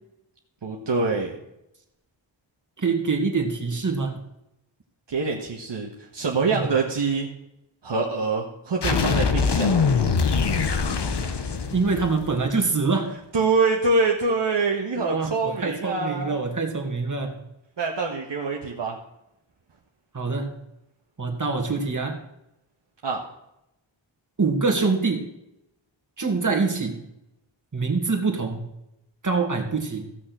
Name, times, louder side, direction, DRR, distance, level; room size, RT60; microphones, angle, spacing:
voice 1, 0.6-1.4 5.1-7.3 7.8-9.8 13.3-16.4 17.8-19.0 23.0-23.2, right 4 dB, 65° right, 0 dB, 1.6 m, -25 dB
voice 2, 2.8-4.2 6.5-6.6 11.7-13.1 15.0-17.3 20.1-20.5 21.2-22.2 24.4-25.3 26.2-27.0 27.7-28.7 29.2-30.1, right 4 dB, 40° right, 3 dB, 2.4 m, -25 dB
sound 1, 8.8-12.5, left 5 dB, 60° left, 1.2 m, -23 dB
15.5 x 6.4 x 6.3 m, 0.84 s
wide cardioid pair, 75°, 47 cm